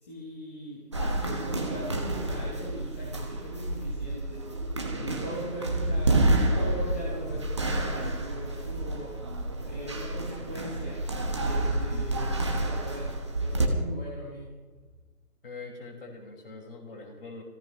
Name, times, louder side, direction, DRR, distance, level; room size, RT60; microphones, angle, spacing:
voice 1, 0.0-4.6 4.9-9.2 9.7-11.0 11.3-14.5, equal, 10° left, -7 dB, 1.2 m, -40 dB
sound 1, 0.9-13.7, right 2 dB, 20° right, 1.1 m, -29 dB
voice 2, 4.9-5.2 11.7-12.1 15.4-17.4, left 3 dB, 35° left, 0 dB, 5.3 m, -43 dB
24.0 x 17.0 x 3.1 m, 1.2 s
figure-of-eight pair, 165°, 48 cm